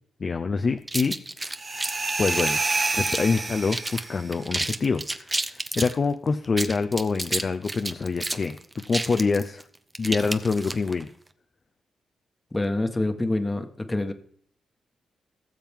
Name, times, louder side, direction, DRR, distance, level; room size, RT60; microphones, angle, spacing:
voice 1, 0.2-1.2 2.2-2.6 2.9-8.6 8.9-9.6 10.0-11.1, left 4 dB, 40° left, 7 dB, 0.6 m, -25 dB
sound 1, 0.9-3.4 3.7-4.0 4.3-6.0 6.4-11.0, right 2 dB, 15° right, 0.8 m, -31 dB
sound 2, 1.5-4.3, right 3 dB, 35° right, 1.2 m, -28 dB
voice 2, 12.5-14.1, left 2 dB, 15° left, 7 dB, 1.3 m, -26 dB
17.5 x 7.5 x 3.6 m, 0.62 s
cardioid pair, 105°, 0 cm